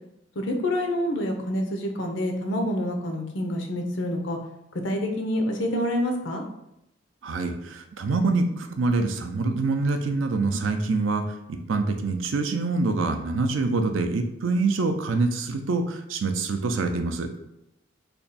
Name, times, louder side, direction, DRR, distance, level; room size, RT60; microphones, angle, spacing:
voice 1, 0.4-4.4 4.8-6.4, left 1 dB, 70° left, 3 dB, 0.6 m, -27 dB
voice 2, 7.2-11.2 11.5-17.3, right 3 dB, 90° right, 6 dB, 0.5 m, -25 dB
3.4 x 2.2 x 4.0 m, 0.83 s
head